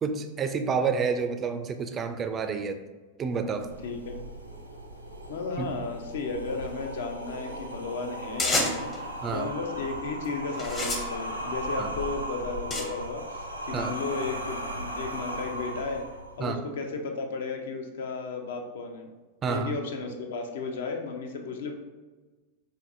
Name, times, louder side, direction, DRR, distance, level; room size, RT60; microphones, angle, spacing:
voice 1, 0.0-2.8 3.2-3.7 5.6-5.7 9.2-9.5 11.8-11.9 13.7-13.9 16.4-16.6 19.4-19.7, right 5 dB, 25° right, 8 dB, 0.3 m, -29 dB
sound 1, 3.6-16.6, right 1 dB, 85° right, 0.5 m, -37 dB
voice 2, 3.8-4.2 5.3-8.9 9.3-16.0 16.4-19.1 19.5-21.7, left 4 dB, 60° left, 4 dB, 0.5 m, -34 dB
sound 2, 8.4-9.0 9.8-10.1 10.5-12.8, left 2 dB, 25° left, 0.7 m, -30 dB
4.6 x 2.5 x 2.6 m, 1.3 s
figure-of-eight pair, 90°, 0 cm